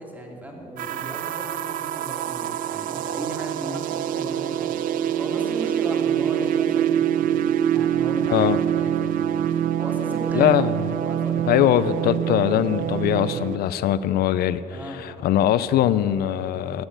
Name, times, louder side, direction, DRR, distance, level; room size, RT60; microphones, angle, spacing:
voice 1, 0.0-7.4 7.7-9.1 9.5-10.7 11.0-11.5 14.7-15.1, right 1 dB, 10° right, 0 dB, 2.4 m, -36 dB
sound 1, 0.8-13.6, right 10 dB, 55° right, 0.4 m, -25 dB
voice 2, 10.3-10.7 11.5-16.9, left 11 dB, 65° left, 14 dB, 0.5 m, -21 dB
12.5 x 7.0 x 9.2 m, 3.0 s
cardioid pair, 110°, 17 cm